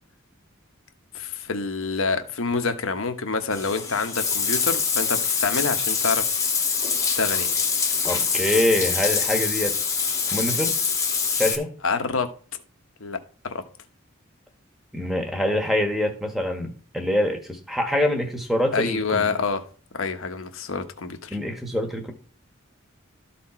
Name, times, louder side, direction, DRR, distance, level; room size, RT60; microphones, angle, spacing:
voice 1, 1.1-6.2 7.0-7.5 11.8-12.3 13.0-13.2 18.7-19.6 19.9-21.3, left 4 dB, 80° left, 7 dB, 1.1 m, -27 dB
Bathtub (filling or washing), 3.5-11.5, left 5 dB, 15° left, 1.0 m, -24 dB
voice 2, 8.1-9.7 10.3-10.7 11.3-11.7 14.9-19.3 21.3-22.1, left 1 dB, ahead, 2 dB, 1.4 m, -25 dB
13.0 x 4.3 x 4.4 m, 0.40 s
head